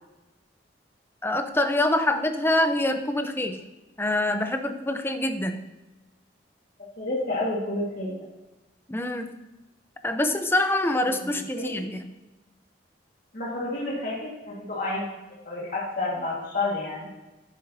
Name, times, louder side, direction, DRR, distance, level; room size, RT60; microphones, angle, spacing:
voice 1, 1.2-3.6 4.0-5.6 8.9-9.4 10.0-12.0, left 1 dB, 15° left, 7 dB, 0.7 m, -25 dB
voice 2, 6.8-8.2 11.2-11.8 13.3-15.1 15.5-17.1, left 2 dB, 50° left, -5 dB, 1.9 m, -30 dB
10.5 x 9.3 x 2.8 m, 1.1 s
head